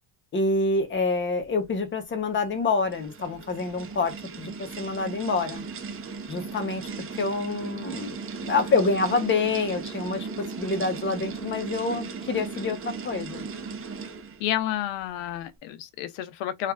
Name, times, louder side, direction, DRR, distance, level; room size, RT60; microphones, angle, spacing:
voice 1, 0.3-5.6 6.3-6.9 7.2-13.4, left 3 dB, 30° left, 0.7 m, -27 dB
sound 1, 2.4-14.5, right 5 dB, 30° right, 0.6 m, -37 dB
voice 2, 14.4-16.7, left 12 dB, 90° left, 0.6 m, -30 dB
3.1 x 2.3 x 2.2 m
cardioid pair, 130°, 42 cm